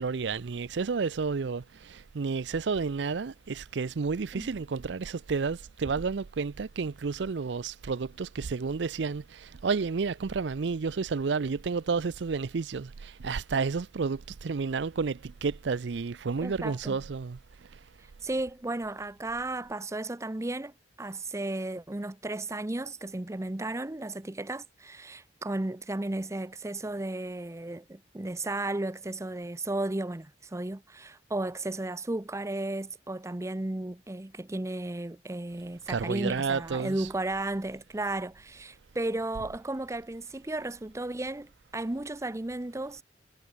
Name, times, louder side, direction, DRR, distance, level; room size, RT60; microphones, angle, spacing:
voice 1, 0.0-17.4 35.9-37.1, right 5 dB, 70° right, 0.5 m, -31 dB
voice 2, 16.4-17.0 18.2-20.7 21.0-43.0, right 2 dB, 15° right, 0.6 m, -34 dB
head